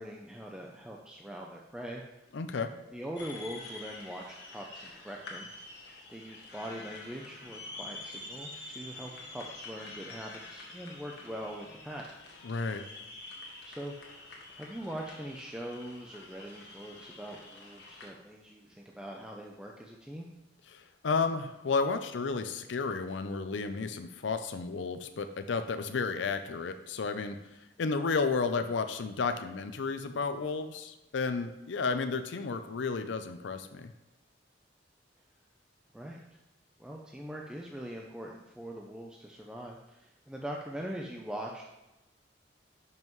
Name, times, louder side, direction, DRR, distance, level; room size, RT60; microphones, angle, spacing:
voice 1, 0.0-2.3 2.9-5.5 6.1-12.0 13.6-20.3 35.9-36.2 36.8-41.7, equal, 5° right, -1 dB, 0.5 m, -42 dB
voice 2, 2.3-2.7 12.4-12.8 20.7-27.4 27.8-33.9, left 4 dB, 80° left, 9 dB, 0.5 m, -32 dB
sound 1, 3.2-18.1, left 2 dB, 65° left, 1.5 m, -47 dB
10.5 x 5.5 x 3.1 m, 0.99 s
head